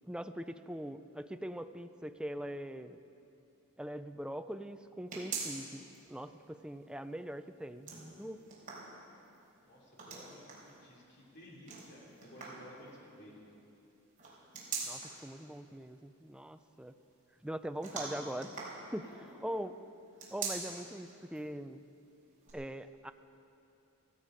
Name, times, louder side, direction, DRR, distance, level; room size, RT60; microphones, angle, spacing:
voice 1, 0.0-3.0 3.8-8.4 14.8-17.0 17.4-18.5 18.9-19.1 19.4-19.8 20.3-21.8 22.5-23.1, equal, 5° right, 9 dB, 0.4 m, -42 dB
sound 1, 5.1-6.0 6.4-6.5 7.6-9.4 9.9-10.7 11.7-12.7 14.2-15.3 17.8-19.3 20.1-20.9 21.4-21.5 22.4-22.5, right 4 dB, 40° right, 4.1 m, -42 dB
voice 2, 9.6-13.3 19.0-19.4, equal, 50° left, -4 dB, 3.0 m, -55 dB
17.0 x 15.5 x 5.1 m, 2.7 s
head